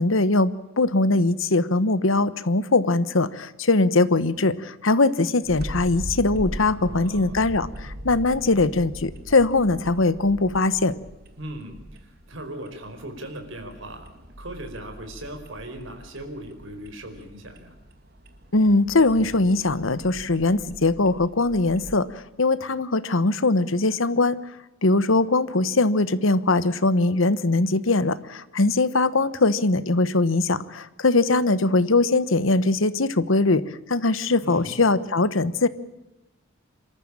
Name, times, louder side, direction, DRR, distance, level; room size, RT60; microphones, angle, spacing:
voice 1, 0.0-11.0 18.5-24.4 24.8-33.6 33.9-35.7, left 2 dB, 75° left, 15 dB, 1.2 m, -21 dB
sound 1, 5.4-22.0, equal, 55° right, 2.4 m, -40 dB
voice 2, 6.8-7.4 11.4-14.1 14.4-17.8 34.4-34.8, right 1 dB, 70° right, 5 dB, 4.8 m, -38 dB
27.0 x 14.0 x 8.8 m, 1.0 s
head